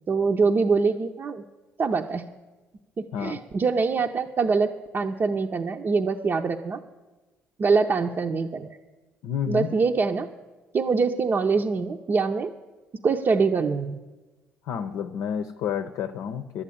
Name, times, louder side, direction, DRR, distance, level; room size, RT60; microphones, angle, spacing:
voice 1, 0.1-1.4 1.8-2.2 3.0-6.8 7.6-8.8 9.5-10.3 10.7-12.5 13.0-14.0, right 4 dB, 40° right, 1 dB, 0.7 m, -24 dB
voice 2, 9.2-9.7 14.7-16.6, left 8 dB, 75° left, 8 dB, 0.7 m, -30 dB
11.5 x 8.5 x 8.6 m, 1.2 s
supercardioid pair, 65°, 5 cm